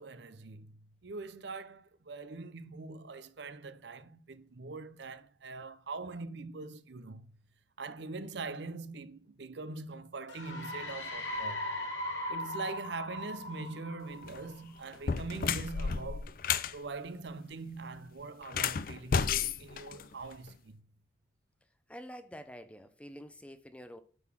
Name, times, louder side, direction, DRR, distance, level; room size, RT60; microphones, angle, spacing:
voice 1, 0.0-7.4 7.8-11.8 12.3-16.4 16.7-20.9, right 3 dB, 70° right, 0.7 m, -43 dB
sound 1, 10.3-14.8, left 1 dB, 80° left, 2.6 m, -39 dB
sound 2, 14.1-14.4 14.9-16.8 18.4-20.5, left 6 dB, 50° left, 0.4 m, -32 dB
voice 2, 21.9-24.0, equal, 5° left, 0.6 m, -47 dB
8.9 x 4.0 x 6.1 m
head